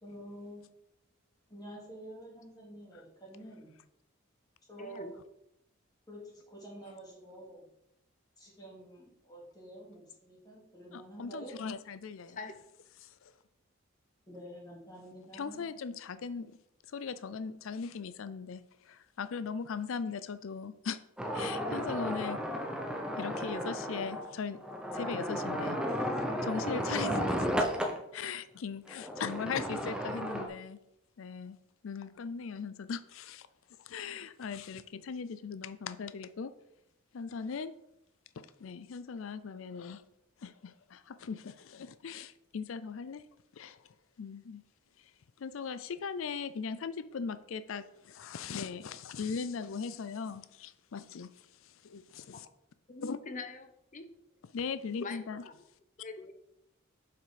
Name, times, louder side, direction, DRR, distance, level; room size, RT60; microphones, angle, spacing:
voice 1, 0.0-0.6 1.5-3.7 4.7-5.2 6.1-7.7 8.4-11.6 14.3-15.7, right 1 dB, 20° left, -3 dB, 2.5 m, -48 dB
voice 2, 4.8-5.1 12.3-12.5 52.3-52.4 52.9-54.1 55.0-55.5 56.0-56.3, left 3 dB, 35° left, 8 dB, 0.8 m, -43 dB
voice 3, 10.9-12.4 13.0-13.3 15.3-16.6 16.9-21.0 21.3-22.4 23.2-24.6 24.9-26.0 26.4-27.7 28.1-30.8 31.2-31.6 31.8-33.5 33.8-36.5 37.1-37.7 38.4-40.0 40.4-43.2 43.6-43.8 44.2-44.6 45.4-51.3 51.6-52.5 53.0-53.2 54.5-55.4, left 5 dB, 70° left, 14 dB, 0.4 m, -39 dB
sound 1, 21.2-28.0 28.9-30.5, equal, 5° right, 0.8 m, -34 dB
7.4 x 5.8 x 5.0 m, 0.82 s
head